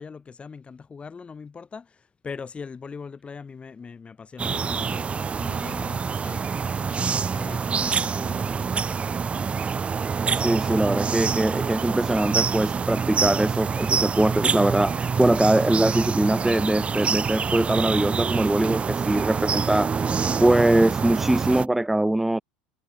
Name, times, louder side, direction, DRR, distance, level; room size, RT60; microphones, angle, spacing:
voice 1, 0.0-5.1 5.4-6.4 6.9-8.5, left 5 dB, 25° left, 3.1 m, -41 dB
sound 1, 4.4-21.7, right 5 dB, 25° right, 1.1 m, -26 dB
voice 2, 10.3-20.1 20.4-22.4, right 1 dB, 5° right, 0.9 m, -22 dB
hypercardioid pair, 80°, 5 cm